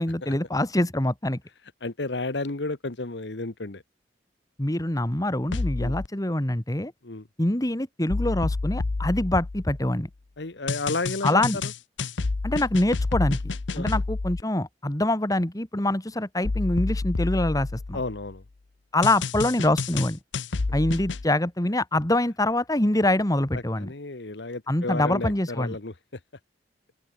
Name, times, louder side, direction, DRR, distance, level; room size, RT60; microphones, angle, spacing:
voice 1, 0.0-1.4 4.6-6.9 7.4-10.1 11.2-11.6 12.4-13.4 13.8-18.0 18.9-20.2 20.7-23.9 24.7-25.8, left 1 dB, 20° left, 1.8 m, -25 dB
voice 2, 1.8-3.8 5.8-6.0 7.0-7.3 10.4-11.7 13.7-14.0 17.9-18.4 23.5-25.9, left 3 dB, 70° left, 1.4 m, -32 dB
sound 1, 5.5-6.1 8.1-10.0 10.7-14.4 16.4-18.3 19.0-21.3, left 3 dB, 90° left, 0.8 m, -29 dB
open air
head